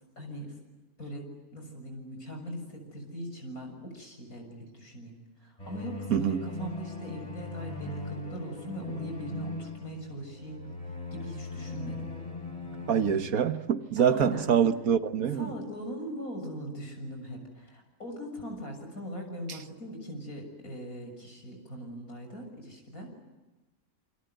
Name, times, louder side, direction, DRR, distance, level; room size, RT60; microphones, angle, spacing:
voice 1, 0.2-0.5 1.0-1.2 1.5-10.6 11.1-12.1 14.0-14.5 15.2-23.2, equal, 75° left, 7.3 m, -40 dB
sound 1, 5.6-13.1, left 2 dB, 25° left, 6.3 m, -39 dB
voice 2, 6.1-6.4 12.9-15.5, right 8 dB, 75° right, 1.7 m, -25 dB
28.0 x 26.0 x 8.0 m
omnidirectional pair, 1.5 m